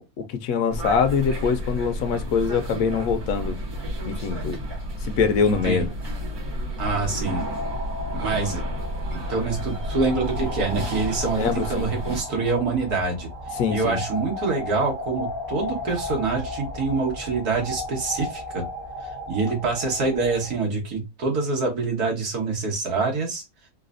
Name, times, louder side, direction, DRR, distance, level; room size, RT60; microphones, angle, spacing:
voice 1, 0.0-3.6 4.0-4.6 5.2-5.9 11.4-11.9 13.6-14.0, left 6 dB, 70° left, 0.9 m, -24 dB
sound 1, 0.7-12.2, equal, 75° right, 1.9 m, -31 dB
voice 2, 5.4-5.9 6.8-7.4 8.1-8.6 9.1-13.3 13.7-18.6 19.0-23.4, right 4 dB, 90° right, 1.9 m, -26 dB
sound 2, 7.2-20.6, left 1 dB, 45° right, 1.2 m, -34 dB
4.0 x 2.2 x 2.4 m
omnidirectional pair, 1.6 m